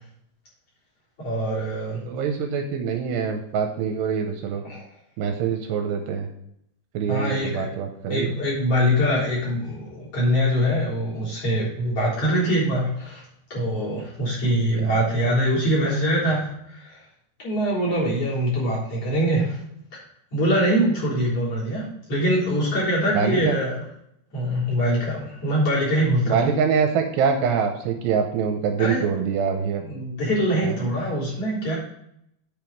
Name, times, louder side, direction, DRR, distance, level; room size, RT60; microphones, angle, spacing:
voice 1, 1.2-2.0 4.6-4.8 7.1-7.7 8.1-13.2 13.5-17.0 17.4-19.6 19.9-20.0 20.3-23.8 24.3-26.5 28.8-29.0 29.8-31.8, equal, 35° left, -6 dB, 4.3 m, -23 dB
voice 2, 2.1-4.6 5.2-6.3 6.9-8.3 14.8-15.1 23.1-23.5 26.2-29.8 30.6-30.7, right 6 dB, 80° right, 4 dB, 2.8 m, -24 dB
9.0 x 5.4 x 4.6 m, 0.76 s
omnidirectional pair, 5.2 m